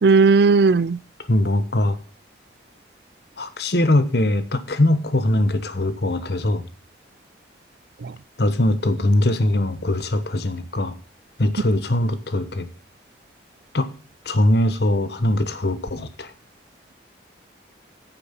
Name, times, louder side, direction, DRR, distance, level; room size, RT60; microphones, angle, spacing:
voice 1, 0.0-1.0, right 4 dB, 65° right, 0.5 m, -15 dB
voice 2, 1.3-2.0 3.4-6.7 8.4-11.0 11.4-12.7 13.7-13.9 14.2-16.3, left 1 dB, 65° left, 1.1 m, -21 dB
9.5 x 6.9 x 5.9 m
head